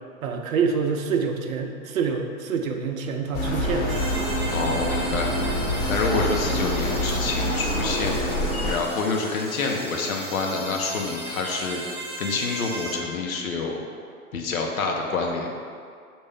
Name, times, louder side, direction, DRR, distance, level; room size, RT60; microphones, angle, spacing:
voice 1, 0.2-3.9, right 5 dB, 65° right, 4 dB, 0.6 m, -26 dB
sound 1, 3.3-8.7, equal, 45° left, 1.2 m, -26 dB
sound 2, 3.9-13.0, right 2 dB, 20° right, 0.4 m, -37 dB
voice 2, 4.4-5.3 5.9-8.2 8.6-11.8 12.2-13.8 14.3-15.5, left 4 dB, 70° left, 1 dB, 0.8 m, -27 dB
5.7 x 2.6 x 3.4 m, 2.3 s
figure-of-eight pair, 110°, 44 cm